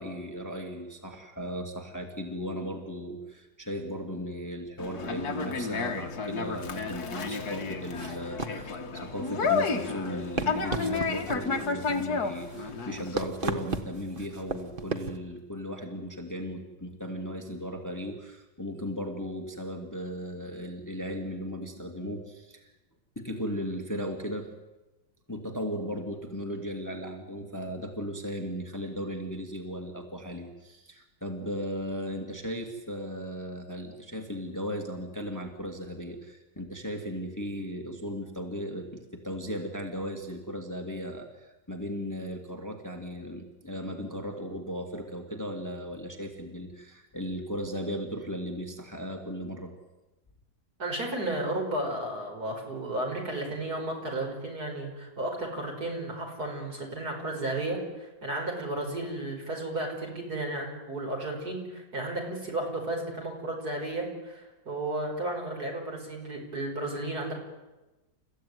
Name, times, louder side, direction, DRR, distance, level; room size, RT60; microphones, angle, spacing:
voice 1, 0.0-22.7 23.2-24.5 25.3-49.7, equal, 10° left, 3 dB, 2.3 m, -36 dB
Conversation, 4.8-13.2, left 4 dB, 55° left, 2.1 m, -31 dB
sound 1, 7.9-15.2, right 3 dB, 30° right, 1.5 m, -37 dB
voice 2, 50.8-67.3, right 1 dB, 55° right, 1 dB, 6.1 m, -33 dB
29.5 x 15.5 x 9.5 m, 1.1 s
omnidirectional pair, 2.0 m